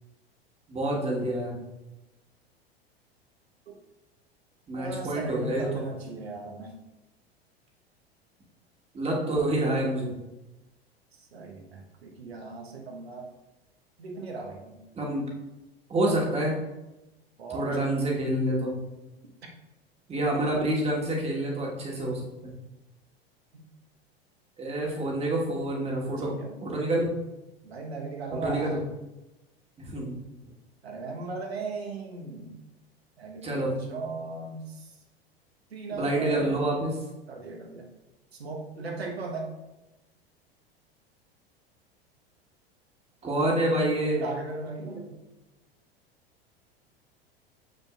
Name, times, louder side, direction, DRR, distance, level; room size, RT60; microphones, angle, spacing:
voice 1, 0.7-1.5 4.7-5.7 8.9-10.1 15.0-15.3 15.9-16.6 17.5-18.8 20.1-22.5 24.6-26.3 26.6-27.1 28.4-28.8 29.8-30.2 33.4-33.8 35.9-36.9 43.2-44.2, right 1 dB, 20° right, -2 dB, 1.6 m, -27 dB
voice 2, 4.7-6.8 11.1-13.3 14.0-14.8 17.4-18.0 20.4-20.6 23.5-23.6 26.0-26.6 27.6-28.8 30.8-32.6 33.2-35.0 35.7-36.6 37.3-37.9 38.3-39.6 44.0-45.2, right 3 dB, 75° right, 1 dB, 1.3 m, -37 dB
6.8 x 6.3 x 2.4 m, 1.0 s
figure-of-eight pair, 85°, 31 cm